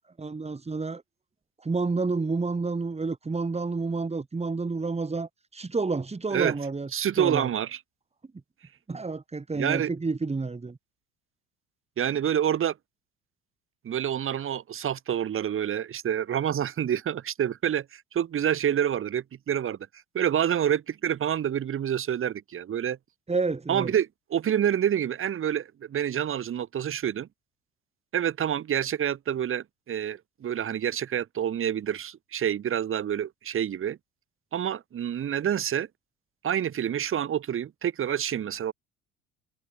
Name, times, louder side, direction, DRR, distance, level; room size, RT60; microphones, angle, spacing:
voice 1, 0.2-1.0 1.6-6.9 7.2-7.5 8.9-10.8 23.3-23.9, right 3 dB, 15° right, 5.6 m, -29 dB
voice 2, 6.9-7.8 9.5-9.9 12.0-12.8 13.8-19.8 20.1-23.0 23.7-27.3 28.1-34.0 34.5-35.9 36.4-38.7, right 9 dB, 35° right, 2.2 m, -27 dB
figure-of-eight pair, 65°, 36 cm